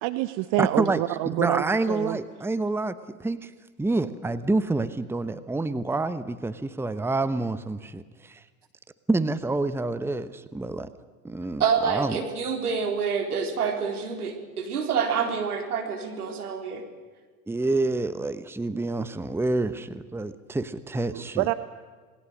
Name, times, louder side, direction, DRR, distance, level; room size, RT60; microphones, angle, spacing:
voice 1, 0.0-2.2 21.1-21.5, right 18 dB, 50° right, 12 dB, 1.1 m, -27 dB
voice 2, 0.6-1.0 1.4-2.9 3.2-3.5 3.8-8.4 9.1-10.9 11.2-12.2 17.5-21.5, right 2 dB, 5° right, 13 dB, 1.1 m, -27 dB
voice 3, 11.6-16.8, right 6 dB, 80° right, 3 dB, 4.1 m, -27 dB
28.0 x 20.5 x 6.5 m, 1.5 s
figure-of-eight pair, 80°, 45 cm